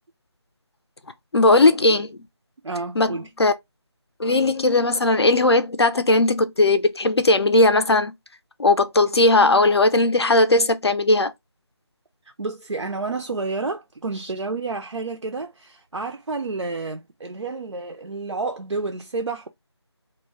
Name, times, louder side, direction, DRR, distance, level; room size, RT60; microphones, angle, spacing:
voice 1, 1.3-2.1 3.0-3.1 3.4-3.5 4.2-8.1 8.6-11.3, left 2 dB, 65° left, 0.4 m, -18 dB
voice 2, 2.6-3.3 12.2-19.5, right 3 dB, 90° right, 0.4 m, -30 dB
2.1 x 2.0 x 3.3 m
figure-of-eight pair, 165°, 15 cm